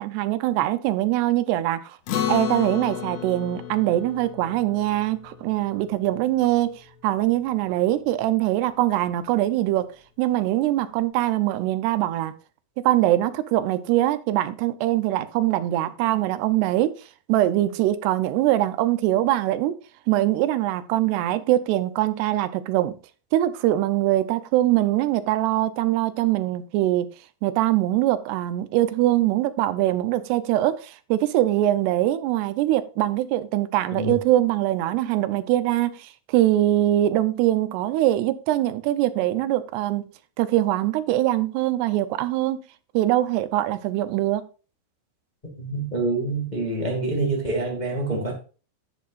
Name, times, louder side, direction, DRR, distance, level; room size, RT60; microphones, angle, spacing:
voice 1, 0.0-2.0 2.3-9.9 10.2-12.3 12.8-16.9 17.3-19.8 20.1-22.9 23.3-27.1 27.4-40.0 40.4-42.6 42.9-44.4, right 14 dB, 85° right, 2.8 m, -22 dB
Acoustic guitar, 2.1-6.8, left 10 dB, 90° left, 3.5 m, -32 dB
voice 2, 45.5-48.3, right 2 dB, 20° left, 1.1 m, -26 dB
11.0 x 9.4 x 2.5 m
omnidirectional pair, 4.7 m